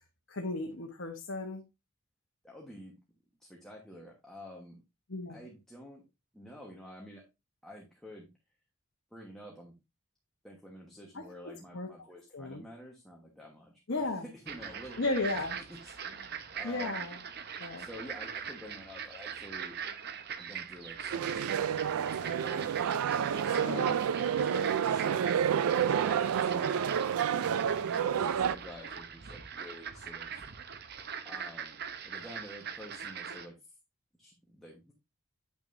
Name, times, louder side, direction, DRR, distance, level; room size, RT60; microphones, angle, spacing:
voice 1, 0.3-1.6 5.1-5.4 11.1-11.2 11.7-11.9 12.3-12.6 13.9-14.2 15.0-15.6 16.6-17.2 17.6-17.9 23.6-24.0, left 2 dB, 60° left, 1.0 m, -34 dB
voice 2, 2.4-2.9 3.4-4.8 5.3-6.0 6.3-7.2 7.6-8.3 9.1-9.7 10.4-15.3 15.8-17.1 17.8-19.8 20.4-23.9 24.3-25.4 26.0-26.8 28.0-30.4 31.2-31.8 32.0-33.7 34.2-34.9, equal, ahead, 1.2 m, -49 dB
sound 1, 14.5-33.5, right 7 dB, 50° right, 0.7 m, -42 dB
sound 2, 21.1-28.6, right 8 dB, 85° right, 0.4 m, -29 dB
8.9 x 6.0 x 2.6 m
head